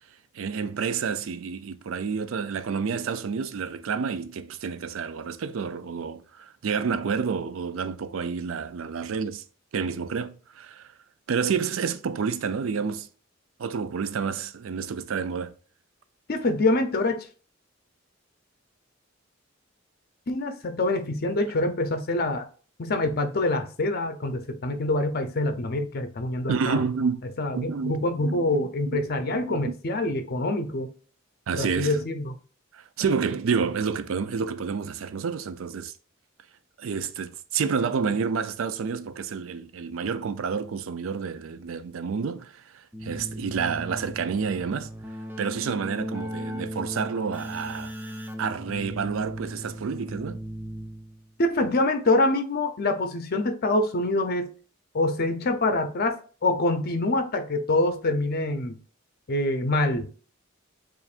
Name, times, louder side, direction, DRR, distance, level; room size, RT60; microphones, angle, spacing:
voice 1, 0.3-9.4 9.7-10.9 11.3-13.1 13.6-15.5 26.5-27.2 27.5-29.7 31.5-32.0 32.7-35.9 36.8-42.6 43.0-44.9 45.4-48.1 48.4-50.4, right 6 dB, 80° right, 0.4 m, -29 dB
voice 2, 16.3-17.2 20.3-22.5 22.8-26.8 27.4-30.9 31.5-32.3 51.4-54.5 54.9-58.8 59.3-60.1, left 2 dB, 50° left, 0.6 m, -25 dB
Keyboard (musical), 42.9-51.3, equal, 10° right, 0.5 m, -37 dB
7.0 x 2.5 x 2.4 m
head